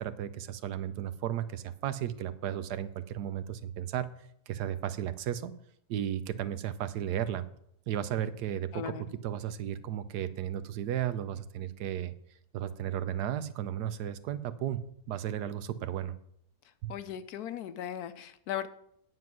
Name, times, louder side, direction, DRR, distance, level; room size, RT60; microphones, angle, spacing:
voice 1, 0.0-4.1 4.5-5.5 5.9-7.4 7.9-9.0 9.2-12.1 12.5-16.2 16.8-16.9, right 10 dB, 75° right, 13 dB, 1.2 m, -34 dB
voice 2, 8.7-9.1 16.9-18.7, left 10 dB, 70° left, 12 dB, 1.1 m, -37 dB
9.5 x 7.6 x 6.1 m, 0.70 s
omnidirectional pair, 1.8 m